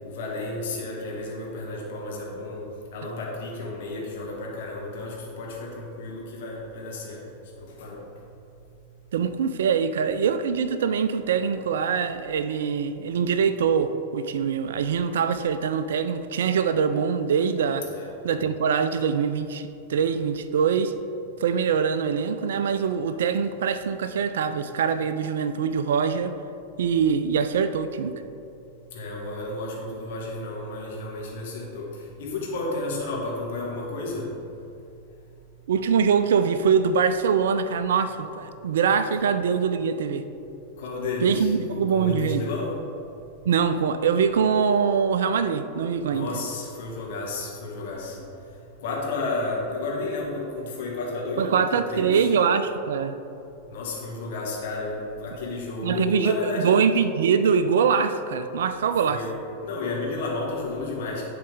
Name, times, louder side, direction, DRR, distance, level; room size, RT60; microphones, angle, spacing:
voice 1, 0.0-2.6 2.9-7.2 7.8-8.0 17.9-18.1 28.9-31.9 32.2-34.3 40.8-42.7 46.1-48.2 48.8-52.3 53.7-56.8 59.1-61.2, left 2 dB, 55° left, -3 dB, 1.6 m, -32 dB
voice 2, 9.1-17.9 18.2-20.9 21.4-26.3 26.8-28.1 35.7-40.2 41.2-42.5 43.5-46.3 51.4-53.2 55.8-59.2, right 6 dB, 60° right, 11 dB, 0.3 m, -23 dB
10.5 x 4.0 x 3.6 m, 2.8 s
figure-of-eight pair, 90°, 0 cm